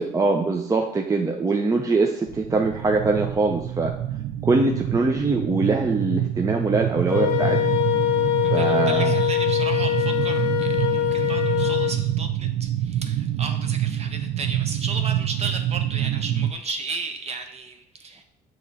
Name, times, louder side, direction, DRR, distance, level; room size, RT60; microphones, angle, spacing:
voice 1, 0.0-3.9 4.4-7.6 8.5-9.2, right 3 dB, 20° right, 3 dB, 0.6 m, -23 dB
sound 1, 2.3-16.5, right 11 dB, 60° right, 0.4 m, -27 dB
Wind instrument woodwind instrument, 7.1-11.9, left 15 dB, 70° left, 0.8 m, -23 dB
voice 2, 8.5-18.2, right 4 dB, 40° right, 5 dB, 1.0 m, -34 dB
7.3 x 3.0 x 5.4 m, 0.69 s
cardioid pair, 110°, 17 cm